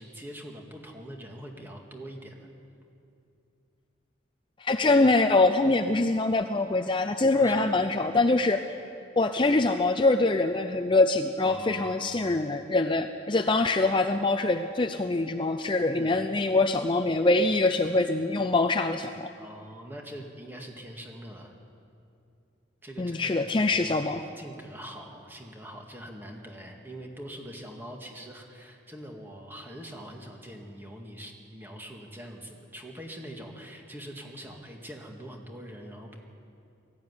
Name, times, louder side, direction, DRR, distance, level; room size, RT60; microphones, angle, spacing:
voice 1, 0.0-2.5 7.3-7.8 11.4-12.4 15.8-16.2 19.4-21.5 22.8-24.1 24.4-36.2, equal, 10° right, 1 dB, 2.0 m, -43 dB
voice 2, 4.6-8.6 9.2-19.3 23.0-24.2, left 2 dB, 25° left, 6 dB, 0.5 m, -24 dB
19.0 x 14.5 x 9.7 m, 2.6 s
head